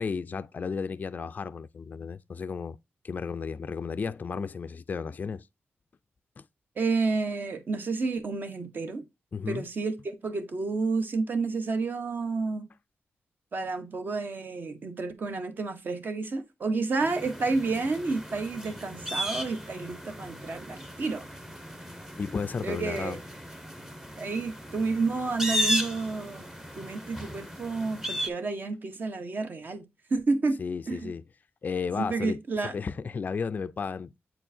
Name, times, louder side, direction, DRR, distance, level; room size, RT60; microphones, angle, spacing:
voice 1, 0.0-2.8 3.0-5.4 6.4-6.5 9.3-9.6 22.2-23.2 30.6-31.2 31.6-34.1, left 5 dB, 40° left, 0.3 m, -33 dB
voice 2, 6.8-9.0 9.5-12.7 13.5-21.2 22.6-23.2 24.2-26.5 26.8-29.8 30.1-30.6 30.9-31.1 32.0-32.8, right 3 dB, 50° right, 1.0 m, -30 dB
sound 1, 17.0-28.3, equal, 10° right, 0.8 m, -35 dB
8.0 x 4.5 x 2.6 m
wide cardioid pair, 135°, 4 cm